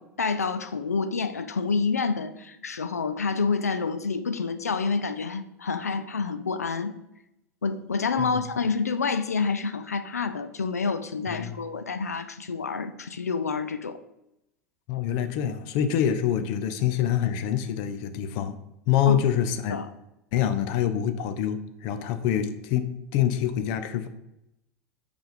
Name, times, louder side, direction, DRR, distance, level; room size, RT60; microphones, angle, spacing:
voice 1, 0.0-7.0 7.6-14.0 19.1-19.2 19.7-19.9, left 4 dB, 85° left, 11 dB, 0.5 m, -28 dB
voice 2, 11.3-11.6 14.9-18.6 18.9-19.8 20.3-22.9 23.1-24.1, left 9 dB, 55° left, 10 dB, 0.7 m, -26 dB
5.6 x 4.2 x 5.1 m, 0.86 s
figure-of-eight pair, 80°, 8 cm